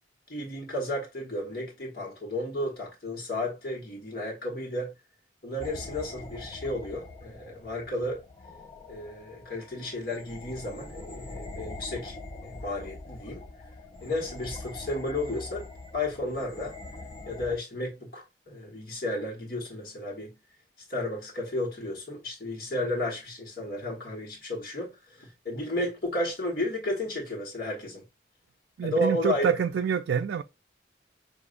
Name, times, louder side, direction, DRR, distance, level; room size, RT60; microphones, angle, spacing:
voice 1, 0.3-4.9 5.4-8.2 8.9-12.1 12.4-13.4 14.0-15.7 15.9-16.7 17.3-20.3 20.9-28.0 28.8-29.5, left 1 dB, 55° left, 1.3 m, -33 dB
sound 1, 5.6-17.6, left 2 dB, 25° left, 0.3 m, -43 dB
voice 2, 28.8-30.4, right 7 dB, 85° right, 0.3 m, -26 dB
6.3 x 2.6 x 2.5 m
head